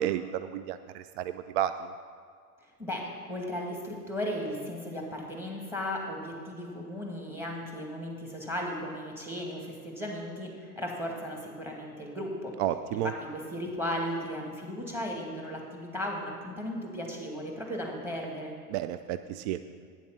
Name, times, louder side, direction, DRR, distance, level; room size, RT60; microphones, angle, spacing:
voice 1, 0.0-1.9 12.6-13.1 18.7-19.6, right 11 dB, 50° right, 11 dB, 0.4 m, -31 dB
voice 2, 2.8-12.6 12.9-18.6, equal, 5° right, 0 dB, 2.2 m, -36 dB
9.5 x 7.2 x 6.0 m, 2.1 s
hypercardioid pair, 95°, 46 cm